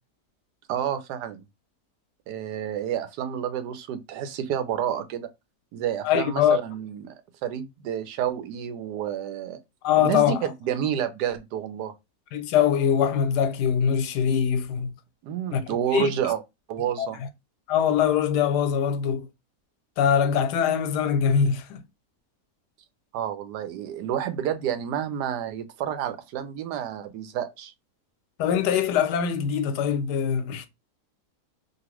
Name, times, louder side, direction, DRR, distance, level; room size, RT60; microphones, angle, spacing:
voice 1, 0.7-1.4 2.3-5.3 5.7-7.1 7.4-9.6 10.0-11.9 15.2-16.4 16.7-17.2 23.1-27.7, right 9 dB, 85° right, 1.2 m, -29 dB
voice 2, 6.0-6.6 9.8-10.4 12.3-14.9 15.5-15.6 15.9-16.1 17.0-17.1 17.7-19.3 20.0-21.8 28.4-30.7, left 8 dB, 90° left, 1.2 m, -22 dB
2.9 x 2.5 x 3.0 m
omnidirectional pair, 1.7 m